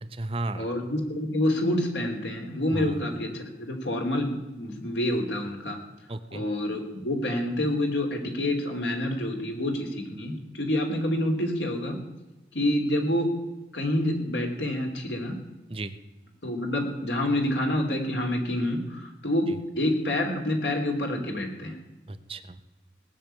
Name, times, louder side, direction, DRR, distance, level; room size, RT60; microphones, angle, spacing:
voice 1, 0.0-0.7 2.7-3.0 6.1-6.4 15.7-16.0 19.5-19.6 22.1-22.6, right 2 dB, 30° right, 10 dB, 0.7 m, -34 dB
voice 2, 0.5-5.8 6.3-12.0 12.5-13.3 13.7-15.4 16.4-21.8, left 1 dB, 85° left, 3 dB, 3.1 m, -27 dB
18.5 x 6.5 x 9.0 m, 1.0 s
head